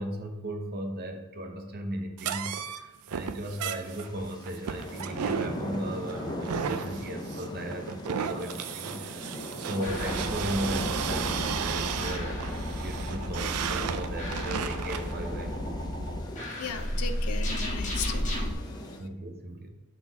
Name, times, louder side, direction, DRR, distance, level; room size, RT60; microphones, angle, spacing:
voice 1, 0.0-15.5 19.0-19.7, right 1 dB, 45° right, 4 dB, 0.8 m, -37 dB
sound 1, 2.2-15.1, right 7 dB, 80° right, 0.4 m, -34 dB
sound 2, 3.8-19.0, equal, 20° left, 0.6 m, -40 dB
sound 3, 9.8-18.5, left 1 dB, 35° left, 1.3 m, -33 dB
voice 2, 16.6-19.0, left 6 dB, 80° left, 9 dB, 0.6 m, -37 dB
6.1 x 4.3 x 4.0 m, 1.1 s
head